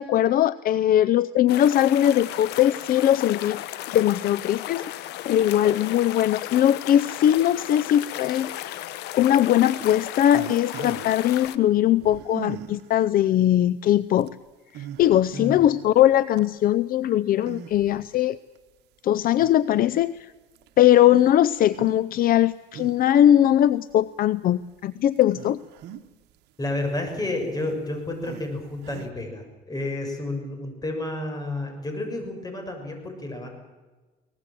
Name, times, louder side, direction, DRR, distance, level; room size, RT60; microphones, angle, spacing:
voice 1, 0.0-3.6 3.9-8.9 9.2-14.3 14.7-18.4 19.0-20.3 20.8-25.6, left 11 dB, 60° left, 17 dB, 0.6 m, -20 dB
sound 1, 1.5-11.6, left 13 dB, 85° left, 1.2 m, -35 dB
sound 2, 9.8-11.2 12.0-12.9 13.6-13.7 14.2-14.3 14.7-15.7 16.2-16.4 17.4-18.1 18.6-18.7 19.4-20.2 20.6-20.7 21.7-22.0 22.4-23.3 23.9-24.0 24.6-24.8 25.2-26.3 26.6-29.1, right 11 dB, 80° right, 1.2 m, -40 dB
voice 2, 15.3-15.6 26.6-33.5, left 2 dB, 20° left, 5 dB, 6.8 m, -31 dB
23.5 x 19.0 x 7.7 m, 1.2 s
cardioid pair, 110°, 17 cm